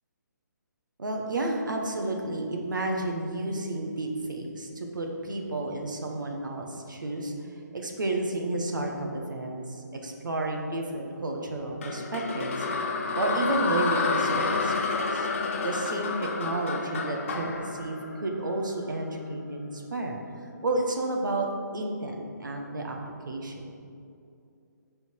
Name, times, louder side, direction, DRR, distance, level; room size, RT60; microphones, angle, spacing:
voice 1, 1.0-15.3 15.5-20.2 20.6-21.5 21.7-23.0 23.2-23.8, right 2 dB, 85° right, 1 dB, 1.4 m, -31 dB
sound 1, 11.8-19.0, left 4 dB, 40° left, 0.7 m, -30 dB
12.5 x 4.3 x 4.6 m, 2.6 s
hypercardioid pair, 170°, 10 cm